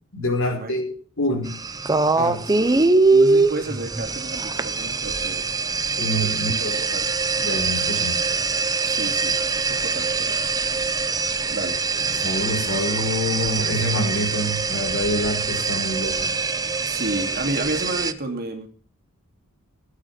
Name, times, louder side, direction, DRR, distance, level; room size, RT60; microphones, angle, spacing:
voice 1, 0.1-0.9 1.2-1.6 2.2-2.4 6.0-6.7 7.4-8.2 12.2-16.3, equal, 65° left, 2 dB, 4.8 m, -26 dB
sound 1, 1.5-18.1, right 4 dB, 20° right, 0.8 m, -23 dB
voice 2, 3.1-5.5 6.6-7.1 8.8-10.4 11.5-11.8 15.1-15.2 16.9-18.7, right 2 dB, 45° right, 4 dB, 3.0 m, -31 dB
17.5 x 9.1 x 6.0 m, 0.42 s
head